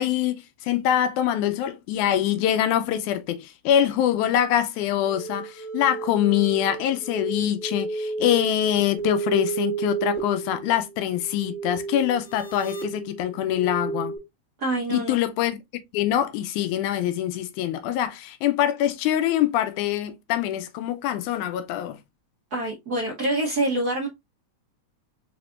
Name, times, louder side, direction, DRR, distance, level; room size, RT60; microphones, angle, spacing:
voice 1, 0.0-14.1 14.9-15.6 15.9-22.0, left 11 dB, 85° left, 2.0 m, -24 dB
sound 1, 5.0-14.2, right 5 dB, 30° left, 1.7 m, -32 dB
voice 2, 14.6-15.2 22.5-24.1, right 1 dB, 75° right, 0.8 m, -26 dB
4.9 x 3.4 x 2.4 m
omnidirectional pair, 3.4 m